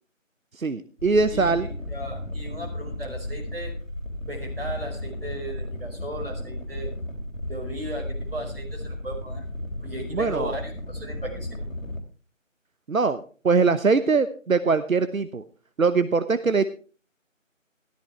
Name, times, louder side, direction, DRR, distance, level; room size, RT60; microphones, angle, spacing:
voice 1, 0.5-1.7 10.1-10.5 12.9-15.4 15.8-16.6, right 4 dB, 85° right, 12 dB, 1.0 m, -22 dB
sound 1, 1.0-12.0, left 1 dB, 75° left, 3.9 m, -34 dB
voice 2, 1.3-3.7 4.2-6.9 7.5-9.4 9.8-11.7, right 1 dB, 45° right, 1 dB, 5.1 m, -36 dB
14.0 x 13.5 x 3.3 m, 0.39 s
figure-of-eight pair, 180°, 40 cm